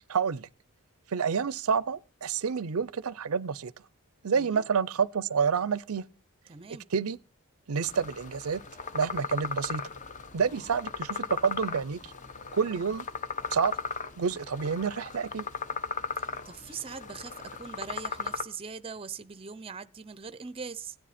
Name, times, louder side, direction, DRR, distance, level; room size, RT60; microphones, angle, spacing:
voice 1, 0.1-0.5 1.1-3.7 4.2-6.0 6.9-7.2 7.7-8.6 8.9-9.8 10.3-12.1 12.5-13.1 13.5-13.7 14.2-15.5, right 6 dB, 80° right, 0.6 m, -28 dB
voice 2, 6.5-6.9 10.6-10.8 16.2-21.0, right 5 dB, 25° right, 0.6 m, -41 dB
sound 1, 7.8-18.4, left 5 dB, 35° left, 0.9 m, -37 dB
16.0 x 10.0 x 4.2 m
head